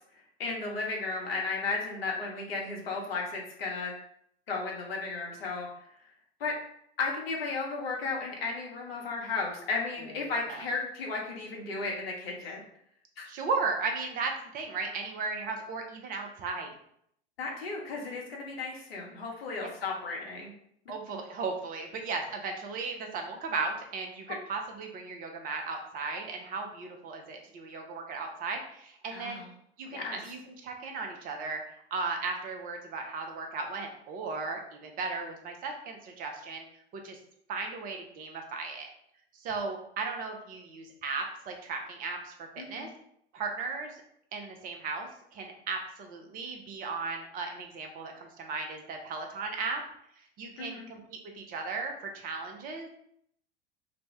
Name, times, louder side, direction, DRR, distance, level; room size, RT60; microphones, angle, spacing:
voice 1, 0.4-3.9 4.5-5.7 6.4-6.5 7.0-12.6 13.2-13.3 17.4-20.5 29.1-29.5 29.9-30.2 42.6-42.9 50.6-50.9, left 3 dB, 65° left, -1 dB, 0.8 m, -34 dB
voice 2, 10.2-10.7 13.3-16.7 20.9-29.4 29.8-31.6 31.9-36.6 36.9-37.2 37.5-38.9 39.3-42.9 43.3-44.0 44.3-49.8 50.4-51.0 51.3-52.9, right 4 dB, 25° right, 3 dB, 0.5 m, -36 dB
2.6 x 2.1 x 3.2 m, 0.71 s
figure-of-eight pair, 85°, 32 cm